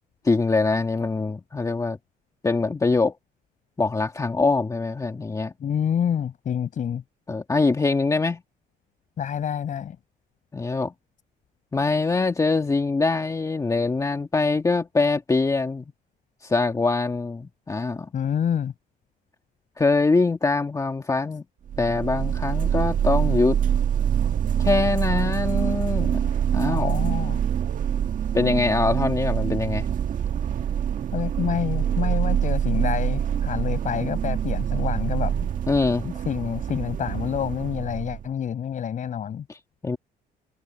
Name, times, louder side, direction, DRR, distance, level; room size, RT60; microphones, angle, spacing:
voice 1, 0.3-2.0 2.4-3.1 3.8-5.5 7.3-8.4 10.5-10.9 11.7-15.9 16.4-18.1 19.8-21.4 21.8-23.6 24.6-26.2 26.5-27.0 28.3-29.9 35.7-36.1 39.5-40.0, left 3 dB, 20° left, 1.8 m, -23 dB
voice 2, 5.6-7.0 9.2-10.0 18.1-18.7 26.7-27.4 31.1-35.5 36.0-39.4, left 8 dB, 50° left, 6.0 m, -28 dB
sound 1, 21.7-38.3, right 9 dB, 50° right, 1.7 m, -25 dB
cardioid pair, 110°, 17 cm